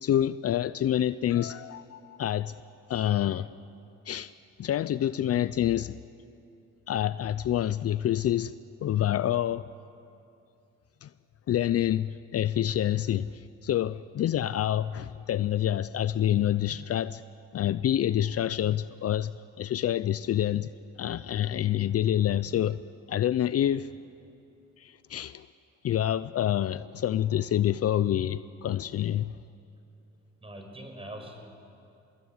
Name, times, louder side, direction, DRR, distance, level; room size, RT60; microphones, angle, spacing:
voice 1, 0.0-2.6 2.9-3.5 4.1-4.3 4.6-5.9 6.9-8.5 8.8-9.7 11.0-11.1 11.5-17.2 17.5-19.3 19.6-20.7 21.0-22.8 23.1-23.9 24.8-25.5 25.8-29.4, left 11 dB, 55° left, 16 dB, 0.6 m, -27 dB
voice 2, 30.4-31.4, right 1 dB, 20° right, 4 dB, 5.7 m, -43 dB
25.0 x 20.5 x 9.5 m, 2.6 s
cardioid pair, 90°, 30 cm